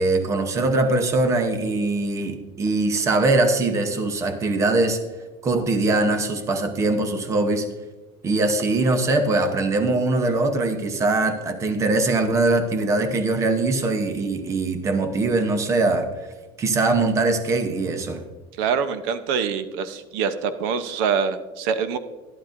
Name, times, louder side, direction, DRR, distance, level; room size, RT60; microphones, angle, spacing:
voice 1, 0.0-5.0 5.4-7.7 8.2-16.0 16.6-18.2, right 2 dB, 25° right, 8 dB, 0.8 m, -22 dB
voice 2, 18.6-22.0, right 6 dB, 75° right, 12 dB, 0.8 m, -25 dB
11.5 x 11.5 x 2.6 m, 1.2 s
cardioid pair, 165°, 13 cm